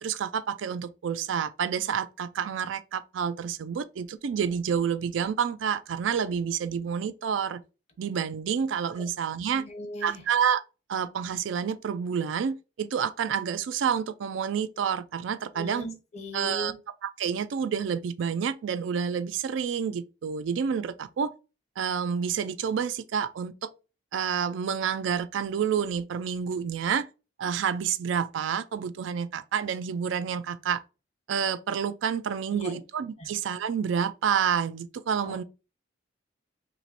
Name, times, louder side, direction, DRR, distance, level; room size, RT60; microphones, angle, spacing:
voice 1, 0.0-7.6 8.0-9.6 10.0-10.6 10.9-15.9 16.3-16.7 17.0-21.3 21.8-23.7 24.1-27.1 27.4-30.8 31.3-35.4, right 7 dB, 80° right, 0.3 m, -29 dB
voice 2, 9.5-10.2 15.5-16.7 32.5-32.8 33.2-33.3 35.2-35.4, left 1 dB, 35° left, 0.7 m, -38 dB
3.0 x 2.9 x 4.0 m
head